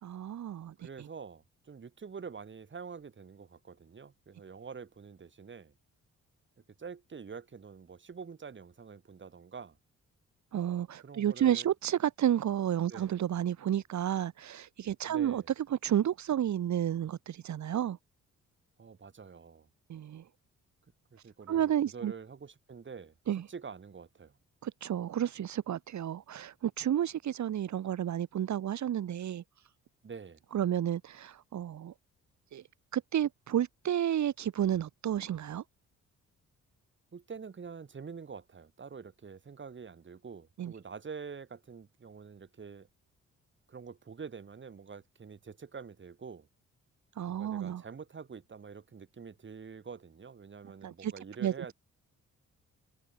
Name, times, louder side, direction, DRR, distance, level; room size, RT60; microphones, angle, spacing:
voice 1, 0.0-1.1 10.5-15.4 15.7-18.0 19.9-20.2 21.5-22.1 23.3-23.4 24.6-29.4 30.5-31.9 32.5-32.6 32.9-35.6 40.6-40.7 47.2-47.8 50.8-51.1 51.4-51.5, right 10 dB, 70° right, 3.4 m, -31 dB
voice 2, 0.8-5.7 6.8-9.8 11.0-11.7 12.9-13.2 15.0-15.5 18.8-19.7 21.1-23.1 23.5-24.4 30.0-30.4 37.1-42.9 43.7-46.5 47.3-51.7, right 5 dB, 40° right, 5.7 m, -46 dB
cardioid pair, 95°, 30 cm